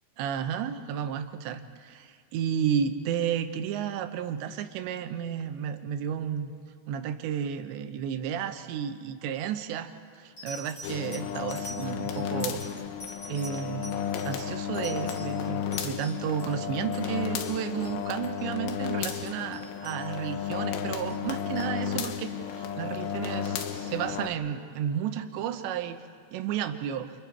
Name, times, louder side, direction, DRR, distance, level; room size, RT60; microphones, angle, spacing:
voice 1, 0.2-6.5 6.9-12.9 13.3-26.0 26.3-27.1, right 8 dB, 90° right, 8 dB, 3.3 m, -32 dB
sound 1, 9.5-9.8 10.4-16.5 16.8-17.2 17.4-17.5 17.8-18.0 18.2-18.4 18.8-20.5 21.1-21.7 22.6-22.7, equal, 25° left, 6.5 m, -45 dB
sound 2, 10.8-24.3, left 8 dB, 80° left, 3.3 m, -33 dB
29.0 x 28.5 x 4.7 m, 2.1 s
omnidirectional pair, 5.0 m